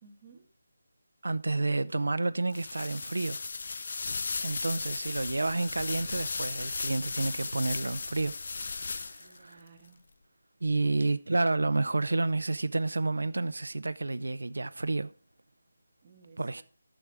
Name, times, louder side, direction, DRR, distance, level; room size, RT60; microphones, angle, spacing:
voice 1, 0.0-0.5 9.2-10.0 10.7-11.1 16.0-16.6, right 4 dB, 20° right, 1.5 m, -56 dB
voice 2, 1.2-3.4 4.4-8.3 8.6-9.6 10.6-15.1 16.4-16.6, right 2 dB, 90° right, 0.5 m, -30 dB
sound 1, 2.5-9.4, left 4 dB, 50° left, 0.4 m, -36 dB
9.7 x 7.2 x 4.7 m
figure-of-eight pair, 170°, 0 cm